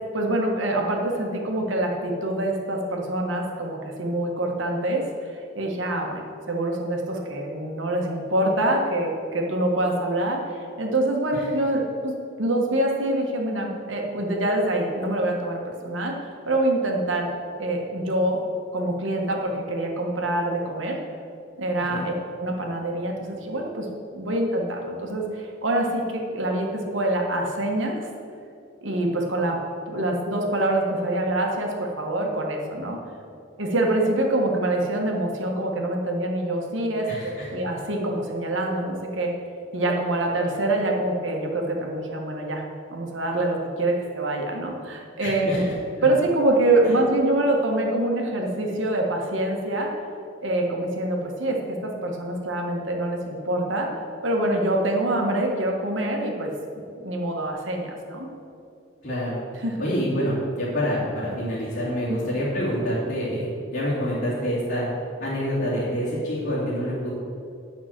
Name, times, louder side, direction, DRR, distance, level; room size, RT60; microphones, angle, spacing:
voice 1, 0.1-5.0 5.5-6.2 6.5-12.1 12.4-16.1 16.4-17.3 17.6-18.4 18.7-21.0 21.6-23.9 24.1-28.0 28.8-29.6 29.9-33.0 33.6-39.3 39.7-42.6 42.9-45.6 46.0-49.9 50.4-53.9 54.2-56.5 57.0-58.3 59.6-59.9 62.1-62.2, right 1 dB, 80° right, 0 dB, 1.5 m, -25 dB
voice 2, 37.1-37.5 45.2-46.1 46.8-46.9 59.0-59.4 59.8-64.8 65.2-67.1, equal, 60° left, -9 dB, 2.6 m, -27 dB
9.2 x 6.1 x 7.3 m, 2.6 s
head